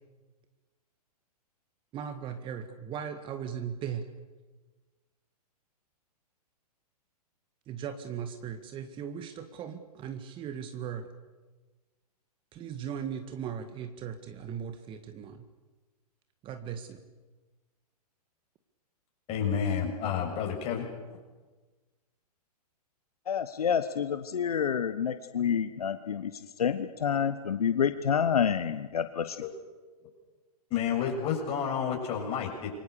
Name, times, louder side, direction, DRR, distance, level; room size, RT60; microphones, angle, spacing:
voice 1, 1.9-4.1 7.7-11.1 12.5-15.5 16.4-17.0, right 8 dB, 25° right, 8 dB, 1.8 m, -38 dB
voice 2, 19.3-21.2 30.7-32.7, left 7 dB, 30° left, 2 dB, 7.2 m, -30 dB
voice 3, 23.3-29.4, left 7 dB, 65° left, 10 dB, 1.3 m, -28 dB
28.0 x 24.0 x 6.9 m, 1.3 s
figure-of-eight pair, 110°, 20 cm